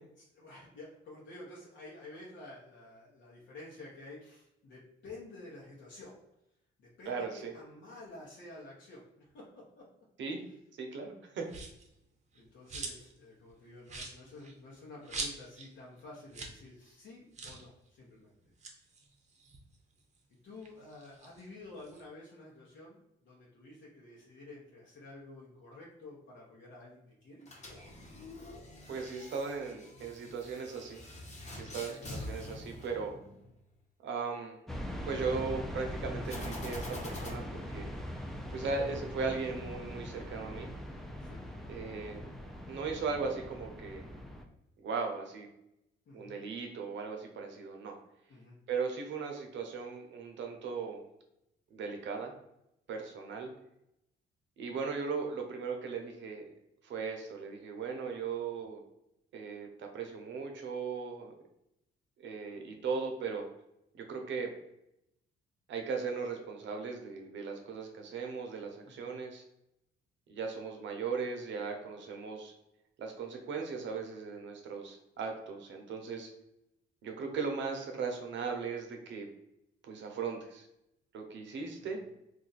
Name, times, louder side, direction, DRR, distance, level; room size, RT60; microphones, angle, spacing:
voice 1, 0.3-6.2 6.8-9.1 9.3-9.9 12.3-18.3 20.4-27.6 31.7-32.0 41.2-41.4 46.1-46.3 48.3-48.6 58.5-58.6 68.8-69.1 81.8-82.0, left 2 dB, 70° left, -5 dB, 1.0 m, -51 dB
voice 2, 7.1-7.5 10.2-10.4 10.8-11.5 28.9-31.0 31.6-33.2 34.0-34.6 35.0-37.9 38.5-40.7 41.7-42.3 42.7-44.1 44.8-45.5 46.1-47.9 48.7-51.0 51.7-52.3 52.9-53.5 54.6-56.4 56.8-58.8 59.3-61.3 62.2-63.4 63.9-64.5 65.7-69.4 70.3-72.5 73.0-76.3 77.0-79.3 79.8-80.7 81.1-82.0, right 5 dB, 70° right, 3 dB, 0.7 m, -37 dB
sound 1, 11.5-11.9 12.3-13.2 13.5-13.6 13.8-15.7 16.0-16.1 16.3-16.6 16.9-17.0 17.3-17.7 18.4-20.2 20.6-22.0, right 3 dB, 35° right, 0.7 m, -43 dB
sound 2, 27.4-33.6 36.2-37.3, left 2 dB, 35° left, 1.1 m, -46 dB
sound 3, 34.7-44.4, equal, ahead, 0.4 m, -41 dB
2.6 x 2.4 x 4.0 m, 0.82 s
cardioid pair, 90°, 20 cm